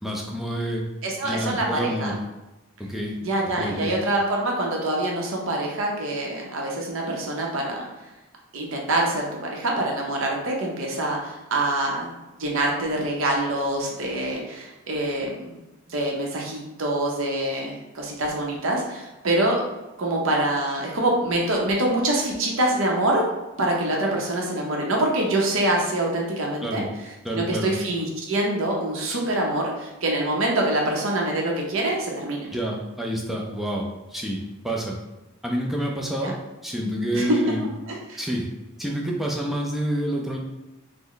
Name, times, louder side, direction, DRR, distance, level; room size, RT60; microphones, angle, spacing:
voice 1, 0.0-0.8 1.2-2.2 2.8-3.2 3.6-4.0 26.6-26.9 27.2-27.7 32.5-35.0 35.4-36.4 36.6-37.7 38.2-38.5 38.8-40.4, equal, ahead, -1 dB, 0.4 m, -28 dB
voice 2, 1.0-2.1 3.2-7.8 8.5-12.1 12.4-15.5 15.9-19.6 20.0-23.2 23.6-26.8 27.3-32.5 36.2-36.3 37.1-37.4 37.9-38.2, right 1 dB, 65° right, -1 dB, 0.6 m, -25 dB
3.0 x 2.1 x 3.8 m, 1.0 s
head